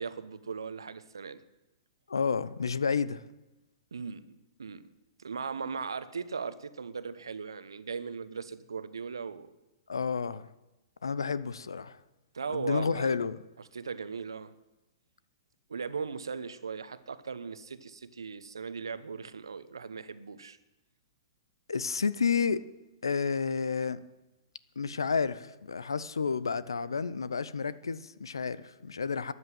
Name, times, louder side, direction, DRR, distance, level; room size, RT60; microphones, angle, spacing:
voice 1, 0.0-1.4 3.9-4.3 4.6-4.9 5.2-9.5 12.3-13.2 13.7-14.5 15.7-20.6, right 5 dB, 80° right, 0.9 m, -38 dB
voice 2, 2.1-3.2 9.9-10.5 11.0-12.0 12.5-13.4 21.7-22.6 23.0-24.0 24.8-29.3, left 5 dB, 85° left, 0.7 m, -30 dB
13.5 x 9.4 x 7.6 m
hypercardioid pair, 115°, 2 cm